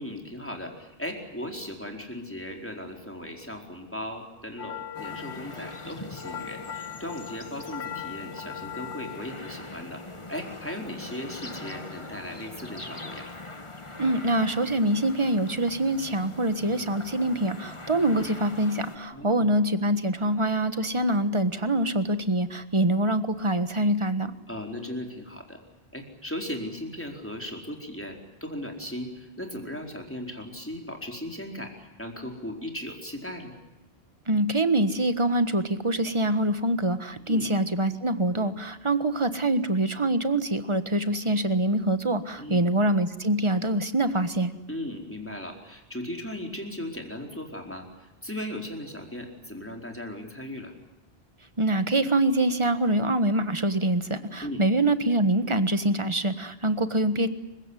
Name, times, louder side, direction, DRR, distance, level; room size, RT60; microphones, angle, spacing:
voice 1, 0.0-10.0 10.3-13.3 19.1-19.5 24.5-25.6 25.9-33.5 37.3-37.5 42.4-42.7 44.7-47.9 48.2-50.7 54.4-54.6, left 1 dB, 10° left, 2 dB, 4.5 m, -37 dB
sound 1, 4.6-10.8, left 9 dB, 85° left, 1.6 m, -40 dB
sound 2, 4.9-19.0, left 2 dB, 30° left, 1.7 m, -42 dB
voice 2, 14.0-24.3 34.3-44.5 51.6-57.3, right 1 dB, 30° right, 11 dB, 1.5 m, -25 dB
28.5 x 16.5 x 9.8 m, 1.0 s
omnidirectional pair, 1.1 m